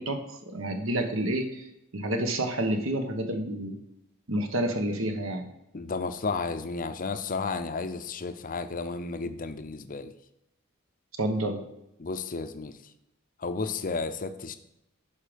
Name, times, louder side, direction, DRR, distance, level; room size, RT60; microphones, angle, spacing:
voice 1, 0.0-1.7 1.9-3.8 4.3-5.5 11.2-11.6, right 1 dB, 65° right, 6 dB, 1.1 m, -29 dB
voice 2, 5.7-10.1 12.0-12.8 13.4-14.6, left 4 dB, 40° left, 10 dB, 0.6 m, -32 dB
11.0 x 5.0 x 5.1 m, 0.86 s
head